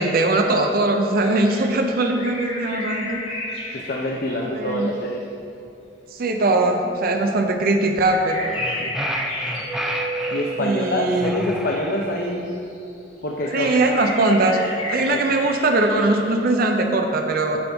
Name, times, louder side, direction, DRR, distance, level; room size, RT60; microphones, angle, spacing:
voice 1, 0.0-3.2 4.3-4.9 6.1-8.9 10.6-11.5 13.5-14.6 14.9-17.6, right 2 dB, 55° right, 4 dB, 0.6 m, -21 dB
sound 1, 1.2-5.0 6.9-7.0 8.0-11.4 12.5-13.0 13.4-16.5, left 1 dB, 35° left, 1.5 m, -33 dB
voice 2, 3.7-5.2 10.3-12.5 13.2-13.7 15.1-15.2, left 1 dB, 55° left, -1 dB, 0.6 m, -26 dB
sound 2, 8.3-10.5 11.2-12.4, right 1 dB, 5° right, 0.4 m, -31 dB
Keyboard (musical), 9.6-12.2, right 4 dB, 80° left, 1.8 m, -33 dB
9.7 x 5.3 x 3.5 m, 2.7 s
head